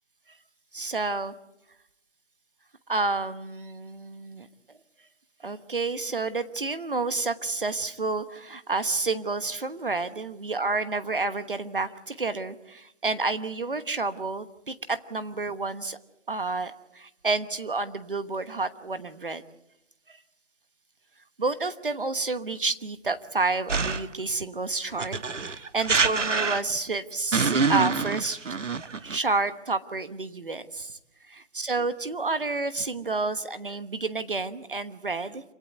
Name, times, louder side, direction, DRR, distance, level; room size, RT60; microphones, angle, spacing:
voice 1, 0.7-1.3 2.9-4.5 5.4-16.0 16.3-19.4 20.1-20.2 21.4-28.5 29.0-31.0 31.3-35.4, right 3 dB, 45° right, 11 dB, 1.2 m, -30 dB
sound 1, 23.7-24.2 25.0-26.9 27.3-29.2, right 4 dB, 90° right, 1.2 m, -26 dB
27.0 x 18.0 x 8.2 m, 0.86 s
figure-of-eight pair, 175°, 36 cm